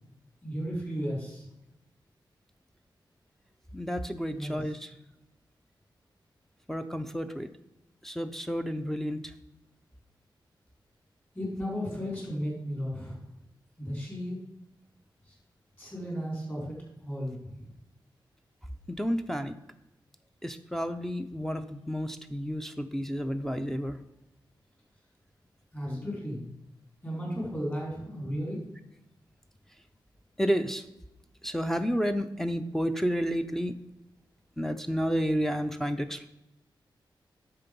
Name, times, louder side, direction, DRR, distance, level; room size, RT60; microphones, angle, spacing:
voice 1, 0.4-1.5 4.3-4.7 11.3-13.2 13.8-14.4 15.3-15.4 15.8-16.8 17.0-17.6 25.7-26.4 27.0-28.6, equal, 20° left, -3 dB, 4.2 m, -34 dB
voice 2, 3.7-4.9 6.7-7.5 8.0-9.3 18.9-19.6 20.4-24.0 30.4-30.8 31.4-33.7 34.6-36.3, equal, 5° left, 5 dB, 0.5 m, -31 dB
9.5 x 6.8 x 5.3 m, 0.92 s
wide cardioid pair, 120°, 8 cm